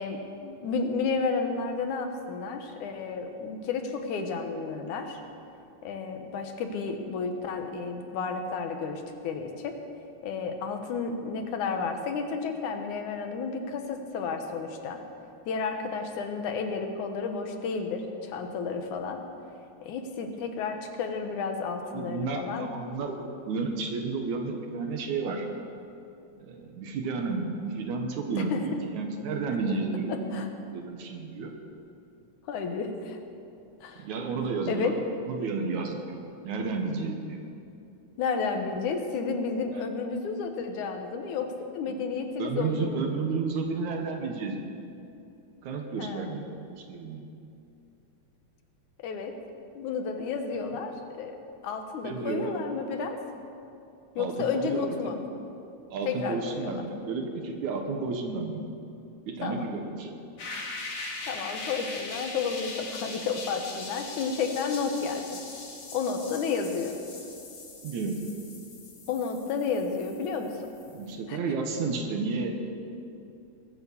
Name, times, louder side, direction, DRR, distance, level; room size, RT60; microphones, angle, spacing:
voice 1, 0.0-5.2 5.8-9.8 10.2-15.0 15.5-19.2 19.8-22.7 28.4-28.7 30.1-30.5 32.5-33.2 33.8-34.1 34.7-34.9 38.2-43.1 46.0-46.3 49.0-49.3 49.8-50.9 51.2-51.4 51.6-53.2 54.2-55.2 56.1-56.8 59.4-59.7 61.3-65.4 65.9-67.0 69.1-70.5 71.3-71.4, left 5 dB, 80° left, 5 dB, 2.7 m, -31 dB
voice 2, 21.9-25.5 26.4-30.4 30.7-31.5 34.0-34.9 35.2-36.0 36.4-37.4 42.4-44.6 45.6-47.2 50.6-50.7 52.0-52.5 54.2-55.2 55.9-58.6 59.3-60.1 67.8-68.2 70.9-72.7, right 4 dB, 75° right, 3 dB, 2.6 m, -32 dB
sound 1, 60.4-71.1, left 3 dB, 45° left, 2.7 m, -41 dB
22.0 x 8.8 x 7.2 m, 2.7 s
omnidirectional pair, 3.4 m